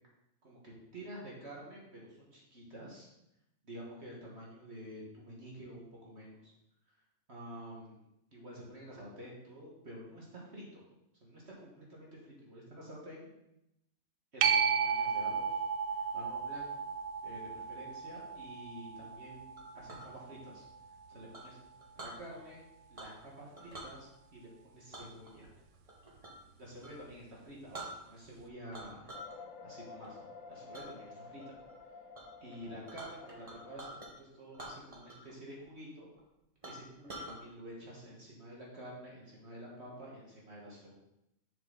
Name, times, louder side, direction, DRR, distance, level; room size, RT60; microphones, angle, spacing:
voice 1, 0.4-3.1 3.6-6.5 6.9-7.0 7.3-8.1 8.3-10.8 11.2-13.3 14.3-15.6 15.9-16.9 17.2-20.7 21.1-21.6 22.0-22.6 22.9-25.5 26.6-29.1 29.6-31.6 32.4-36.1 36.6-41.0, equal, 50° right, -4 dB, 2.0 m, -49 dB
sound 1, 14.4-21.6 27.1-27.2, right 6 dB, 80° right, 1.0 m, -34 dB
Chink clink, 19.6-20.1 21.3-22.2 22.9-23.3 23.6-23.9 24.9-26.5 26.8-27.0 27.4-27.5 27.7-28.4 28.7-29.4 29.7-30.1 30.7-30.9 31.4-31.8 32.1-32.2 32.5-34.1 34.5-35.3 35.6-35.7 36.2-36.3 36.6-37.4, right 1 dB, 25° right, 1.4 m, -47 dB
sound 2, 29.1-34.1, left 4 dB, 75° left, 1.2 m, -51 dB
7.0 x 6.9 x 4.0 m, 0.84 s
omnidirectional pair, 1.4 m